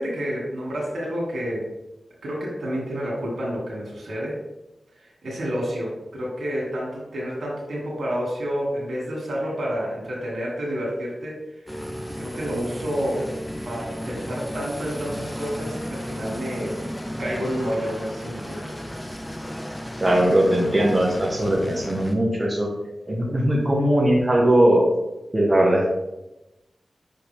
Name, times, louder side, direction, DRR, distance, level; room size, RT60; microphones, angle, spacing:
voice 1, 0.0-1.6 2.2-4.4 5.2-11.4 12.2-13.3 13.6-16.8 17.2-18.7, equal, 85° right, -3 dB, 2.4 m, -29 dB
sound 1, 11.7-22.1, equal, 10° left, 0.9 m, -34 dB
voice 2, 20.0-22.7 23.1-24.8 25.3-25.9, right 1 dB, 25° right, -2 dB, 1.4 m, -19 dB
6.2 x 5.7 x 3.5 m, 0.97 s
wide cardioid pair, 90°, 0 cm